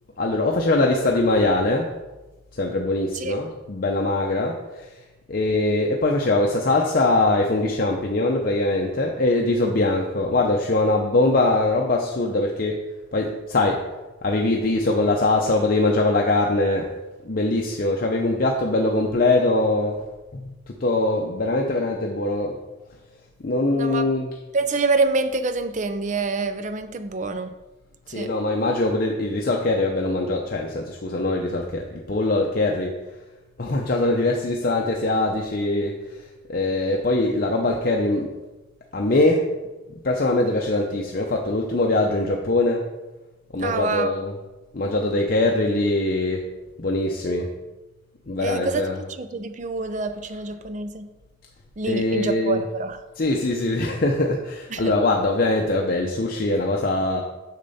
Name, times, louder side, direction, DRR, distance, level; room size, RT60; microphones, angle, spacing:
voice 1, 0.2-1.9 2.6-4.9 5.3-12.8 13.1-13.8 14.2-16.9 17.2-20.0 20.3-20.5 20.8-22.5 23.4-24.4 28.1-32.9 33.6-36.0 36.5-38.3 38.9-39.4 40.0-42.8 43.5-44.4 44.7-46.4 46.8-47.5 48.3-49.1 51.9-52.7 53.2-57.2, left 2 dB, 50° left, 1 dB, 0.6 m, -22 dB
voice 2, 23.7-24.1 24.5-27.5 28.1-28.3 43.6-44.2 48.4-48.9 49.2-51.1 51.8-53.0 54.7-54.9, right 3 dB, 40° right, 10 dB, 0.5 m, -26 dB
6.7 x 6.6 x 4.1 m, 1.1 s
head